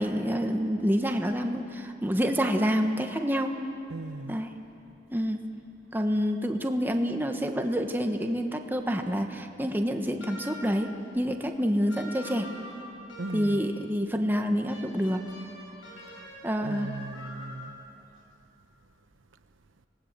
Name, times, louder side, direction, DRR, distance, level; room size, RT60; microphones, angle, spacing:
voice 1, 0.0-3.5 4.3-4.5 5.1-5.4 5.9-12.5 13.3-15.2 16.4-16.9, equal, 10° right, 4 dB, 1.2 m, -27 dB
voice 2, 3.9-4.4 13.2-13.6 16.6-17.7, right 2 dB, 85° right, 10 dB, 0.9 m, -38 dB
sound 1, 10.2-10.9 11.9-13.7 14.7-17.9, equal, 85° left, 5.9 m, -45 dB
26.0 x 19.0 x 7.5 m, 3.0 s
head